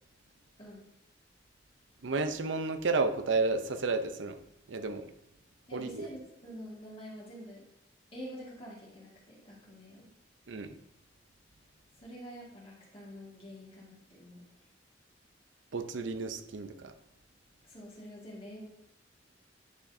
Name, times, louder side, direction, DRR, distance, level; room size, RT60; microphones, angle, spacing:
voice 1, 2.0-4.4 4.7-5.1 5.7-6.1 10.5-10.7 15.7-16.9, right 3 dB, 85° right, 9 dB, 0.6 m, -32 dB
voice 2, 5.7-7.6 8.1-10.1 12.0-14.5 17.6-18.7, equal, 30° left, -5 dB, 1.8 m, -47 dB
9.9 x 6.1 x 2.7 m, 0.79 s
head